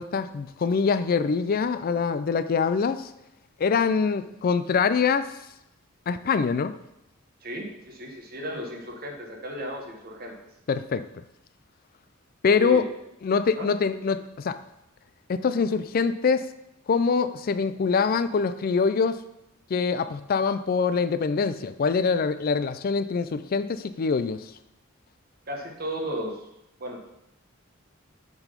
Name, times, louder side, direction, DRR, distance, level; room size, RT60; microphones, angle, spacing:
voice 1, 0.0-3.1 3.6-5.3 6.1-6.8 10.7-11.0 12.4-12.8 13.2-14.6 15.3-16.5 16.9-19.2 19.7-24.5, left 5 dB, 45° left, 13 dB, 0.4 m, -24 dB
voice 2, 7.4-10.3 12.6-12.9 13.5-13.7 25.5-26.4 26.8-27.0, equal, 50° right, 1 dB, 1.3 m, -34 dB
7.1 x 4.0 x 5.1 m, 0.85 s
head